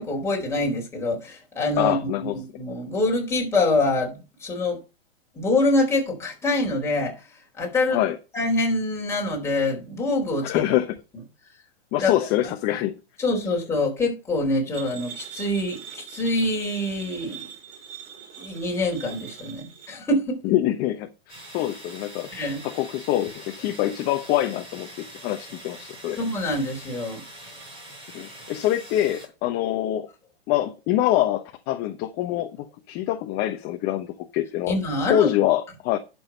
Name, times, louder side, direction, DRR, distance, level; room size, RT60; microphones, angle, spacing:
voice 1, 0.0-4.8 5.3-7.3 7.6-8.0 8.3-10.6 12.0-12.1 13.2-17.5 18.4-20.4 22.3-22.6 26.2-27.2 34.7-35.3, left 2 dB, 10° left, 4.4 m, -25 dB
voice 2, 1.8-2.4 7.9-8.2 10.4-10.9 11.9-12.9 20.4-22.3 22.6-26.2 28.1-30.1 30.5-34.7 35.1-36.0, left 13 dB, 30° left, 1.0 m, -25 dB
sound 1, 14.7-19.9, right 8 dB, 40° right, 4.7 m, -42 dB
sound 2, 21.3-29.3, right 1 dB, 15° right, 5.0 m, -43 dB
11.5 x 6.3 x 5.3 m
hypercardioid pair, 140°, 31 cm